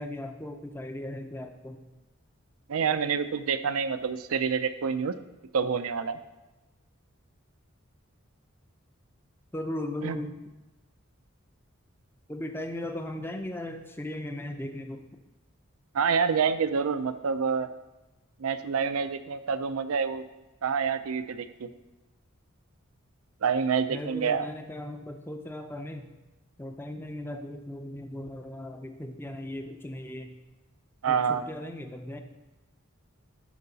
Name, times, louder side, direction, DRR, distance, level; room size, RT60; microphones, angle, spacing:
voice 1, 0.0-1.8 9.5-10.4 12.3-15.1 23.9-26.1 26.6-30.3 31.1-32.2, left 1 dB, 10° left, 6 dB, 0.5 m, -37 dB
voice 2, 2.7-5.2 5.5-6.2 10.0-10.2 15.9-17.7 18.4-20.2 20.6-21.7 23.4-24.5 31.0-31.4, right 6 dB, 85° right, 11 dB, 0.5 m, -27 dB
12.0 x 4.7 x 4.0 m, 1.1 s
head